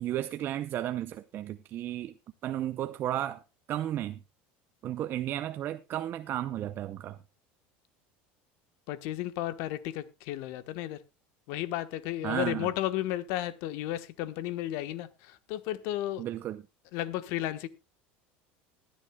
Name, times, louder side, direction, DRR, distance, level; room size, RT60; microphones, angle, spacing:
voice 1, 0.0-2.1 2.4-3.4 3.7-4.2 4.8-7.2 12.2-12.7 16.2-16.6, right 12 dB, 40° right, 0.6 m, -33 dB
voice 2, 8.9-11.0 11.5-16.2 16.9-17.7, left 13 dB, 70° left, 1.2 m, -33 dB
20.5 x 10.0 x 2.3 m
supercardioid pair, 130°, 5 cm